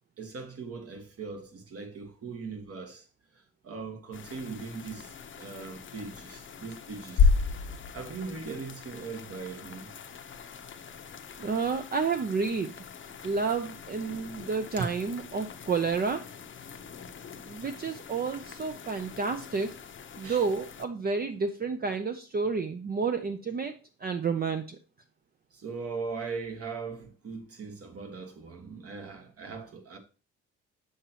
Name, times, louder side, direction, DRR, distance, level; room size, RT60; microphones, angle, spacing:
voice 1, 0.2-3.1 3.3-9.9 14.8-14.9 20.2-20.5 25.5-30.0, right 4 dB, 50° right, 1.6 m, -40 dB
sound 1, 4.1-20.8, left 7 dB, 40° left, 0.8 m, -46 dB
sound 2, 7.2-9.3, left 5 dB, 90° left, 1.2 m, -25 dB
voice 2, 11.4-12.7 13.2-16.2 17.5-19.7 20.2-23.7 24.0-24.8, right 5 dB, 30° right, 0.6 m, -30 dB
6.8 x 6.6 x 2.9 m
cardioid pair, 90°, 30 cm